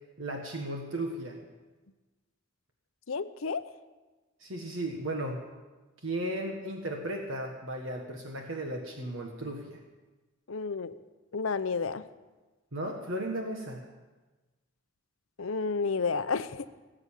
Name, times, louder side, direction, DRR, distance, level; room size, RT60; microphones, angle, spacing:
voice 1, 0.2-1.4 4.4-5.4 6.0-9.8 12.7-13.8, right 1 dB, 65° right, 2 dB, 1.5 m, -35 dB
voice 2, 3.1-3.6 10.5-11.0 11.3-12.1 15.4-16.7, left 4 dB, 75° left, 12 dB, 0.7 m, -31 dB
17.5 x 7.9 x 8.7 m, 1.2 s
head